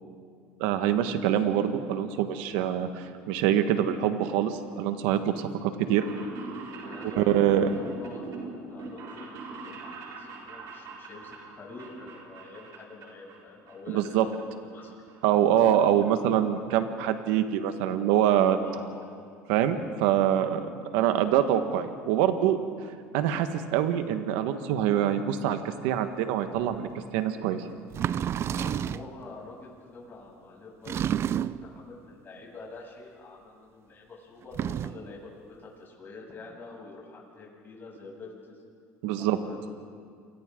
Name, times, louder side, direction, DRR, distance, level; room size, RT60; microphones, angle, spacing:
voice 1, 0.6-6.0 7.2-7.7 13.9-14.3 15.2-18.6 19.5-22.6 23.1-26.9 27.1-27.6 39.0-39.4, right 10 dB, 85° right, 8 dB, 1.5 m, -25 dB
sound 1, 5.8-13.4 13.7-14.4 14.7-16.0 17.0-17.1 17.3-17.4 17.7-17.8 18.1-18.4 18.7-18.8 19.0-19.1, right 3 dB, 60° right, 5.3 m, -42 dB
voice 2, 6.8-14.9 18.6-19.1 28.5-38.6 39.2-39.7, left 3 dB, 35° left, -3 dB, 7.7 m, -46 dB
sound 2, 26.7-26.8 27.9-29.1 30.9-31.7 34.4-35.1, right 10 dB, 45° right, 0.5 m, -30 dB
29.5 x 23.5 x 3.9 m, 2.2 s
supercardioid pair, 95°, 6 cm